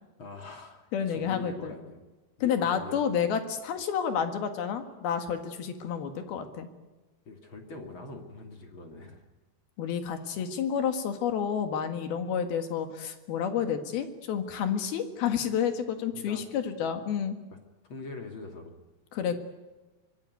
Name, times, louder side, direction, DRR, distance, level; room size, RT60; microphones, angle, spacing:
voice 1, 0.2-2.0 2.4-3.1 7.3-9.2 16.1-16.4 17.8-18.8 19.2-19.3, left 3 dB, 35° left, 4 dB, 2.4 m, -43 dB
voice 2, 0.9-1.8 2.4-6.7 9.8-17.4 19.1-19.4, left 8 dB, 70° left, 7 dB, 3.5 m, -30 dB
25.0 x 20.0 x 9.4 m, 1.2 s
omnidirectional pair, 4.8 m